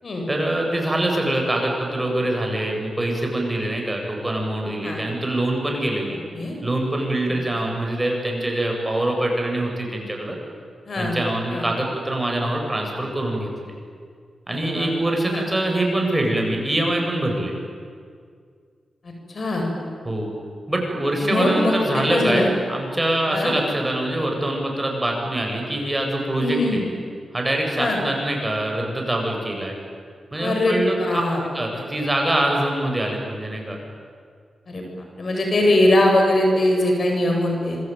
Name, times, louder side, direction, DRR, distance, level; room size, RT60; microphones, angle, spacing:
voice 1, 0.3-6.2 6.6-10.4 11.0-13.7 14.5-17.5 20.0-20.3 20.7-26.8 27.3-29.7 30.3-31.2 31.5-33.8, right 1 dB, 20° right, 1 dB, 8.0 m, -24 dB
voice 2, 7.3-7.6 10.9-11.2 11.5-11.7 14.5-14.9 15.3-15.4 19.0-19.7 21.2-22.5 23.3-23.5 26.4-26.8 27.7-28.0 30.4-31.4 31.7-31.8 34.7-34.8 35.2-37.8, left 1 dB, 55° left, 1 dB, 7.7 m, -22 dB
26.0 x 23.5 x 9.5 m, 2.1 s
cardioid pair, 60°, 0 cm